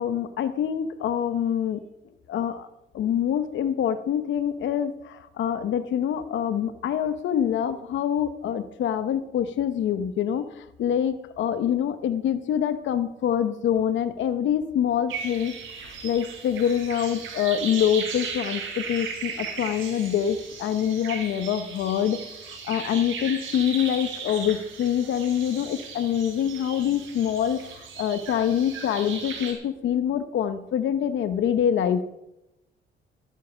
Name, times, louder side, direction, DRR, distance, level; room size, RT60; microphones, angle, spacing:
voice 1, 0.0-1.8 2.3-2.7 2.9-15.5 15.8-32.0, left 9 dB, 70° left, 11 dB, 0.8 m, -25 dB
sound 1, 15.1-29.5, right 5 dB, 85° right, 3.7 m, -37 dB
12.5 x 10.0 x 6.1 m, 0.88 s
cardioid pair, 90°, 20 cm